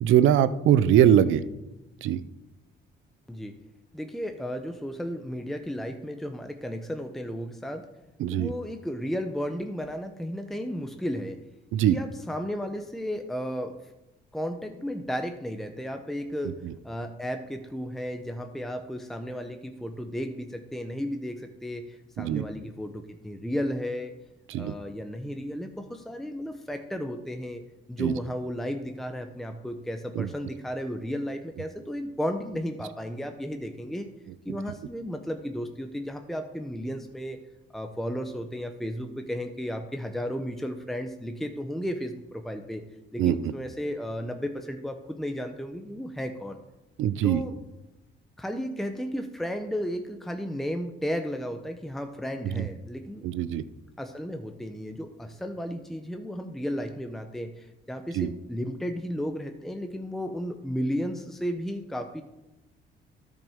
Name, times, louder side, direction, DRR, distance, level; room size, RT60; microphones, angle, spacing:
voice 1, 0.0-1.4 2.0-2.2 8.2-8.5 11.7-12.0 22.2-22.4 24.5-24.7 28.0-28.1 30.2-30.3 43.2-43.3 47.0-47.4 53.2-53.6 58.1-58.3, right 10 dB, 80° right, 14 dB, 0.5 m, -21 dB
voice 2, 3.9-7.9 8.3-11.4 11.9-13.8 14.3-24.1 24.6-27.6 27.9-34.1 34.4-37.4 37.7-42.8 43.1-46.6 47.2-47.6 48.4-53.3 54.0-62.2, equal, ahead, 6 dB, 0.7 m, -34 dB
13.0 x 5.3 x 3.6 m, 0.98 s
cardioid pair, 90°, 20 cm